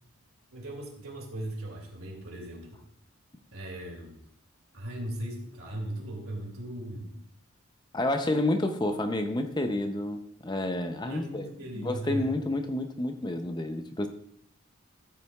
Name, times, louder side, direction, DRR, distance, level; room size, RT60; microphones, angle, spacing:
voice 1, 0.5-2.8 3.5-4.2 4.7-7.2 11.0-12.3, right 1 dB, 80° right, 1 dB, 2.5 m, -38 dB
voice 2, 7.9-11.5 11.8-14.1, left 1 dB, 20° left, 8 dB, 0.5 m, -29 dB
13.5 x 8.2 x 2.3 m, 0.67 s
head